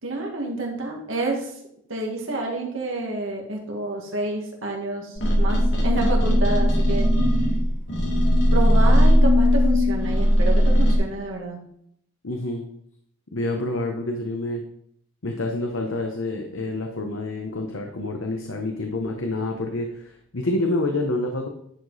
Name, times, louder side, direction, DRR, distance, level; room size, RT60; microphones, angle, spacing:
voice 1, 0.0-1.5 1.9-7.1 8.5-11.6, right 2 dB, 80° right, -1 dB, 2.0 m, -29 dB
sound 1, 5.2-11.0, equal, 60° left, 2.1 m, -18 dB
voice 2, 12.2-12.6 13.3-14.6 15.2-21.5, left 2 dB, 85° left, 3 dB, 1.0 m, -27 dB
10.5 x 5.0 x 4.1 m, 0.72 s
head